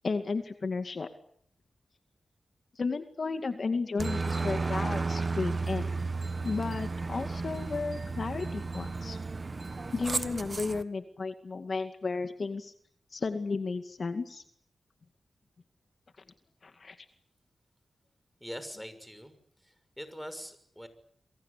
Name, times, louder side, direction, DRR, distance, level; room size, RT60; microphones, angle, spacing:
voice 1, 0.0-1.1 2.8-5.9 6.4-9.2 9.9-12.7 13.1-14.4 16.6-17.0, left 4 dB, 55° left, 7 dB, 2.2 m, -33 dB
Aircraft, 4.0-10.8, right 3 dB, 45° right, 1.4 m, -33 dB
voice 2, 18.4-19.4 19.6-20.9, equal, ahead, 11 dB, 6.2 m, -43 dB
28.0 x 23.0 x 8.4 m, 0.67 s
cardioid pair, 70°, 0 cm